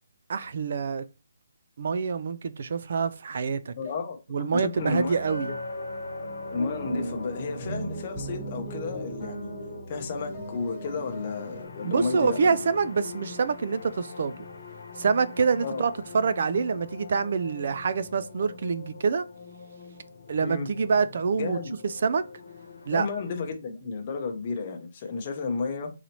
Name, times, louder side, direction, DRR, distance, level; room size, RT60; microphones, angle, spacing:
voice 1, 0.3-1.1 1.8-3.7 4.3-5.5 11.8-14.4 15.0-19.3 20.3-21.6 21.8-22.3 22.9-23.1, right 5 dB, 45° right, 0.3 m, -26 dB
voice 2, 3.8-5.2 6.5-9.5 9.9-12.6 15.6-15.8 20.4-20.7 21.4-21.7 22.9-25.9, left 4 dB, 25° left, 0.7 m, -32 dB
sound 1, 4.7-23.5, left 3 dB, 60° left, 1.0 m, -42 dB
Chink clink, 5.3-9.5, left 2 dB, 85° right, 1.4 m, -40 dB
sound 2, 6.5-9.9 10.2-11.6, right 2 dB, ahead, 1.3 m, -38 dB
3.9 x 3.0 x 2.9 m
hypercardioid pair, 175°, 0 cm